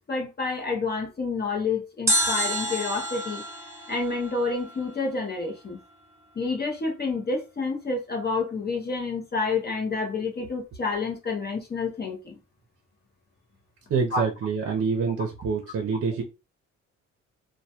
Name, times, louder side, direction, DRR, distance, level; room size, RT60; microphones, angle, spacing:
voice 1, 0.0-3.4 3.9-5.8 6.4-12.4 14.1-14.2, left 4 dB, 35° left, 0.7 m, -29 dB
sound 1, 2.1-5.2 5.4-5.5, right 1 dB, 10° right, 0.7 m, -29 dB
voice 2, 13.9-16.2, right 5 dB, 50° right, 0.6 m, -26 dB
2.2 x 2.1 x 2.8 m
cardioid pair, 90°, 30 cm